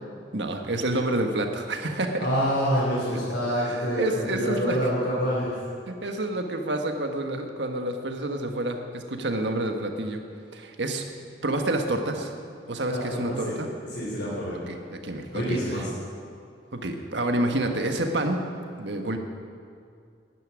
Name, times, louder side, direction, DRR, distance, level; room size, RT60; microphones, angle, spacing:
voice 1, 0.3-2.3 3.6-4.8 5.9-10.2 10.5-11.0 11.4-12.3 12.7-13.7 14.7-15.8 16.7-18.4 18.8-19.2, right 1 dB, 70° right, 4 dB, 1.6 m, -28 dB
voice 2, 2.2-5.5 12.9-13.5 13.9-14.6 15.3-15.9, equal, 70° left, -8 dB, 3.9 m, -27 dB
11.5 x 11.0 x 9.7 m, 2.3 s
head